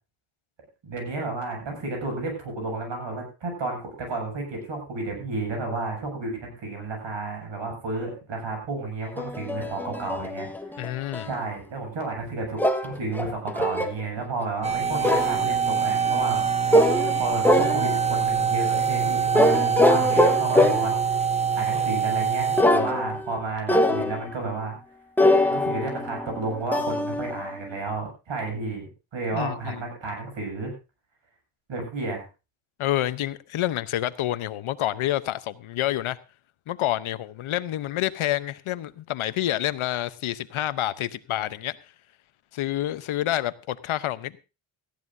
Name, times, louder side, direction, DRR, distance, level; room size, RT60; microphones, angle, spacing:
voice 1, 0.8-16.4 17.2-20.9 21.5-24.8 25.5-30.7 31.7-32.3, right 3 dB, 60° right, 7.8 m, -32 dB
sound 1, 9.2-11.4 12.6-14.0 15.0-15.5 16.7-17.2 17.4-18.1 19.3-21.1 22.6-23.4 23.7-24.3 25.2-27.8, left 1 dB, 5° left, 1.4 m, -23 dB
voice 2, 10.8-11.3 29.3-29.8 32.8-36.2 36.7-41.8 42.5-44.4, left 13 dB, 75° left, 0.9 m, -28 dB
sound 2, 14.6-22.6, right 6 dB, 15° right, 0.9 m, -24 dB
18.5 x 15.0 x 2.7 m
cardioid pair, 120°, 50 cm